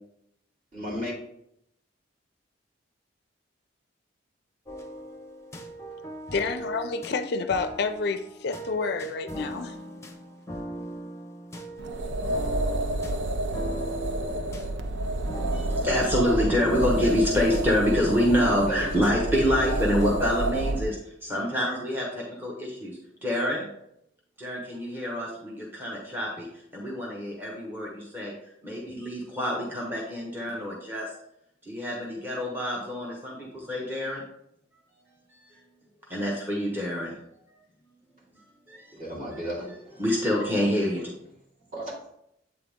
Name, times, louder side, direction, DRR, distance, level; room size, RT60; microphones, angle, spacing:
voice 1, 0.7-1.1 18.7-19.1 38.9-40.0 41.7-41.9, equal, 40° right, 2.2 m, -34 dB
sound 1, 4.7-20.3, right 1 dB, 15° left, 0.6 m, -40 dB
voice 2, 6.3-9.8, left 4 dB, 55° left, 0.4 m, -29 dB
sound 2, 11.8-20.9, right 1 dB, 65° right, 0.5 m, -29 dB
voice 3, 15.5-23.7 24.4-26.5 26.7-28.3 28.6-31.1 31.6-34.2 35.4-35.6 36.1-37.1 38.7-39.0 39.3-39.4 40.0-41.1, equal, 10° right, 0.9 m, -27 dB
7.9 x 3.8 x 3.5 m
head